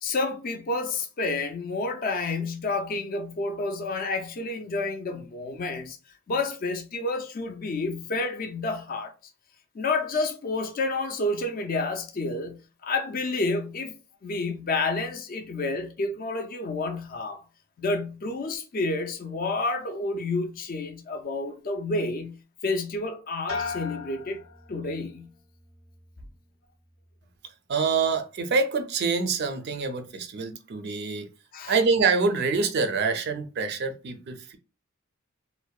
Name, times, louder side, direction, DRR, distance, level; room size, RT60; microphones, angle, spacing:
voice 1, 0.0-6.0 6.3-9.1 9.7-14.0 14.2-17.4 17.8-22.4 22.6-24.4 24.7-25.3 31.5-31.7, left 3 dB, 40° left, 0.4 m, -29 dB
sound 1, 23.5-25.2 25.6-26.2, left 4 dB, 80° left, 0.7 m, -37 dB
voice 2, 27.7-31.3 31.7-34.6, right 4 dB, 50° right, 0.4 m, -26 dB
2.6 x 2.0 x 2.2 m
head